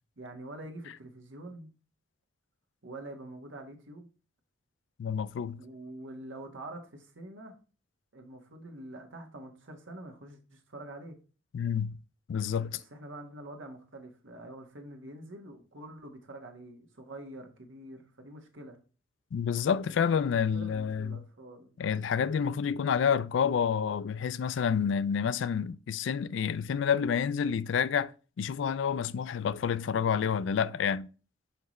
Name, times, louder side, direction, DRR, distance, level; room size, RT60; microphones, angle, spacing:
voice 1, 0.2-1.7 2.8-4.1 5.5-7.6 8.1-11.2 12.7-18.8 20.0-20.2 20.5-21.7, right 1 dB, 85° right, 1.4 m, -46 dB
voice 2, 5.0-5.6 11.5-11.9 12.3-12.8 19.3-21.2 21.8-28.1 28.4-31.1, left 7 dB, 70° left, 0.3 m, -29 dB
5.7 x 5.5 x 3.1 m
head